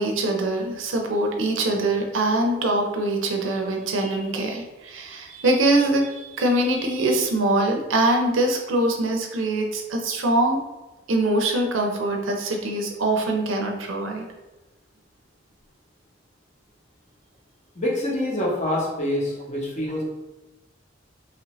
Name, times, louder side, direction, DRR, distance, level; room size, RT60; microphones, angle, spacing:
voice 1, 0.0-10.6 11.1-14.3, right 2 dB, 80° right, 2 dB, 0.5 m, -23 dB
voice 2, 17.8-20.0, left 1 dB, 40° left, -3 dB, 0.9 m, -26 dB
2.9 x 2.6 x 3.0 m, 1.1 s
head